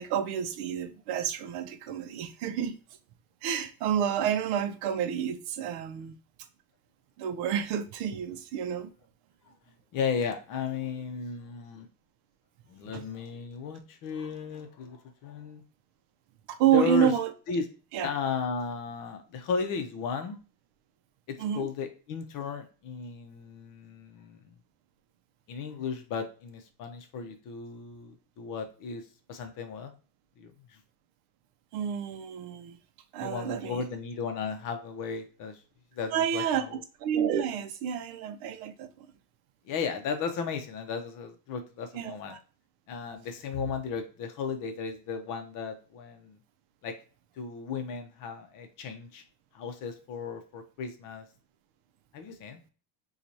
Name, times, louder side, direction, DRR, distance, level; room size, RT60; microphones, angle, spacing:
voice 1, 0.0-2.8 3.4-6.2 7.2-8.9 12.9-13.0 16.5-17.3 17.9-18.1 21.4-21.7 31.7-32.8 33.1-33.8 36.1-36.6 37.0-39.1 41.9-42.4, right 9 dB, 60° right, 0.6 m, -29 dB
voice 2, 9.9-11.9 12.7-15.6 16.7-17.1 17.5-17.7 18.0-20.4 21.3-24.6 25.5-29.9 30.4-30.8 33.2-35.6 35.9-36.8 39.6-42.4 42.9-46.4 46.8-47.0 47.4-49.2 49.5-51.3 52.1-52.6, left 5 dB, 45° left, 0.6 m, -35 dB
4.3 x 2.4 x 2.6 m
cardioid pair, 150°, 47 cm